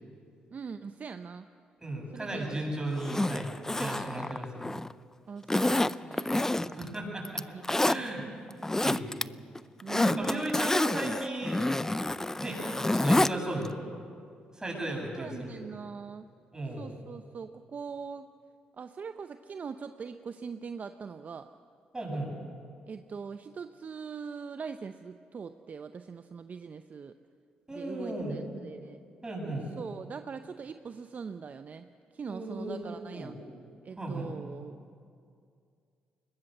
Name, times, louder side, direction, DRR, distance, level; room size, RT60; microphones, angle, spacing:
voice 1, 0.5-1.5 2.1-2.7 5.3-6.9 7.5-8.3 9.8-10.5 15.1-16.3 16.8-18.3 18.8-21.5 22.9-27.1 27.7-29.0 29.8-31.9 32.1-33.3 33.8-34.8, right 5 dB, 50° right, 9 dB, 0.7 m, -42 dB
voice 2, 1.8-4.5 6.7-7.4 7.8-8.2 8.8-9.2 10.0-11.6 12.4-12.6 12.9-13.7 14.5-15.7 16.5-16.9 21.9-22.3 27.7-28.4 29.2-29.7 32.3-33.4 34.0-34.3, right 1 dB, 20° right, -1 dB, 7.9 m, -35 dB
Zipper (clothing), 3.0-4.9 5.5-6.9 7.3-8.0 8.5-9.2 9.6-13.3 13.7-13.8, left 1 dB, 15° left, 0.5 m, -28 dB
21.5 x 19.5 x 7.9 m, 2.4 s
supercardioid pair, 55°, 4 cm